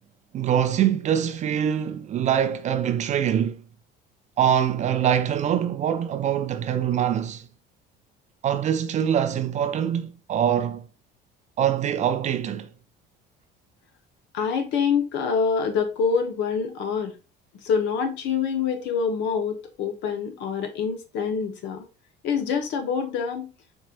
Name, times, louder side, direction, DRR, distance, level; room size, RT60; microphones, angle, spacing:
voice 1, 0.3-3.6 4.4-7.5 8.4-10.9 11.6-12.7, right 9 dB, 35° right, 0.4 m, -24 dB
voice 2, 14.3-17.2 17.6-21.9 22.2-23.5, left 6 dB, 65° left, 1.1 m, -26 dB
4.6 x 4.4 x 2.5 m
cardioid pair, 140°, 20 cm